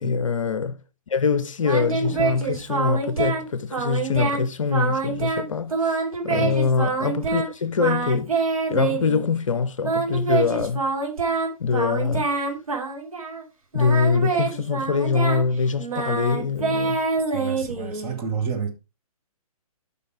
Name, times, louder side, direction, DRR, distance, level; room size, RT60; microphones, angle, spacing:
voice 1, 0.0-0.8 1.1-6.0 6.2-8.4 8.7-10.9 11.6-12.3 13.7-17.0, left 5 dB, 55° left, 0.7 m, -24 dB
Singing, 1.6-3.5 3.7-4.4 4.7-7.5 7.8-9.2 9.8-13.4 13.7-18.2, right 4 dB, 65° right, 2.8 m, -26 dB
sound 1, 2.0-3.6, equal, 10° left, 3.0 m, -42 dB
voice 2, 17.3-18.7, right 6 dB, 20° right, 1.5 m, -30 dB
8.4 x 5.7 x 4.7 m
figure-of-eight pair, 130°, 20 cm